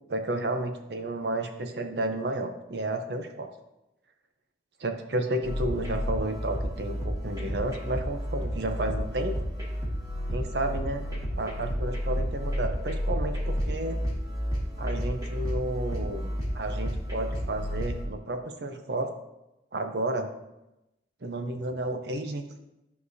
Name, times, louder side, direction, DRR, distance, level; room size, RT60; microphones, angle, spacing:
voice 1, 0.1-3.5 4.8-9.4 10.3-11.0 11.4-14.0 14.8-19.1 19.7-20.3 21.2-22.6, right 1 dB, 65° right, 6 dB, 0.7 m, -32 dB
sound 1, 5.4-18.0, equal, 20° right, 1.7 m, -31 dB
10.5 x 4.8 x 2.7 m, 0.93 s
head